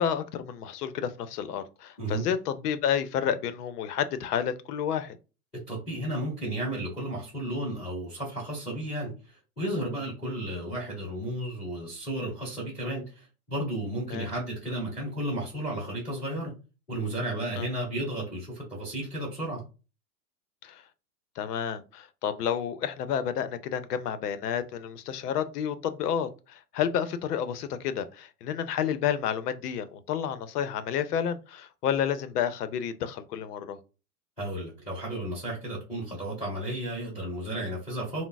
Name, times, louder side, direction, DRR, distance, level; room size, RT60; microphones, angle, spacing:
voice 1, 0.0-5.2 14.1-14.3 17.6-17.8 20.6-20.8 21.4-33.8, left 8 dB, 75° left, 0.6 m, -30 dB
voice 2, 5.7-16.5 16.9-19.6 34.4-38.2, right 1 dB, 5° left, 0.4 m, -33 dB
2.4 x 2.0 x 3.9 m
supercardioid pair, 180°, 46 cm